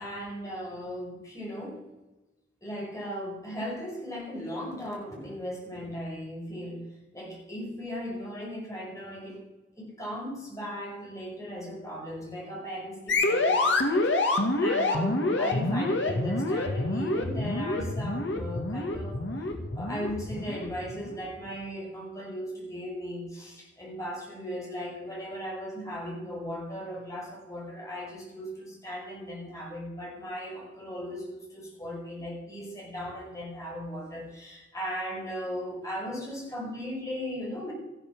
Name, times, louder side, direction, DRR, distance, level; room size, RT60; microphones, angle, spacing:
voice 1, 0.0-1.9 2.6-6.8 7.1-9.4 9.8-19.2 19.7-37.7, equal, 15° left, -3 dB, 5.3 m, -37 dB
sound 1, 13.1-21.2, left 2 dB, 70° left, 2.1 m, -27 dB
14.0 x 12.0 x 6.1 m, 1.0 s
head